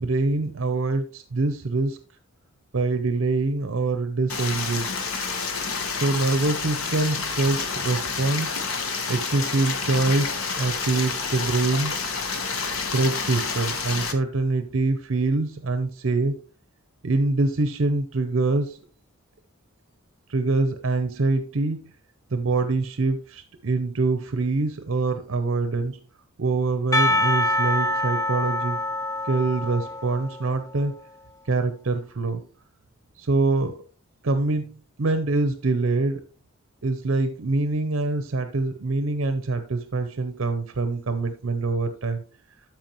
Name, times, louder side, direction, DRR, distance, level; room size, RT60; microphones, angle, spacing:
voice 1, 0.0-2.0 2.7-5.0 6.0-8.6 9.1-12.0 12.6-16.4 17.0-18.8 20.3-21.8 22.3-26.0 26.4-28.8 29.2-30.9 31.5-32.5 33.2-33.8 34.2-36.2 36.8-42.2, right 3 dB, 70° right, 9 dB, 0.7 m, -25 dB
Stream, 4.3-14.1, left 4 dB, 90° left, 1.2 m, -29 dB
Percussion, 26.9-30.8, left 1 dB, 15° left, 0.6 m, -25 dB
13.0 x 4.6 x 3.0 m, 0.39 s
head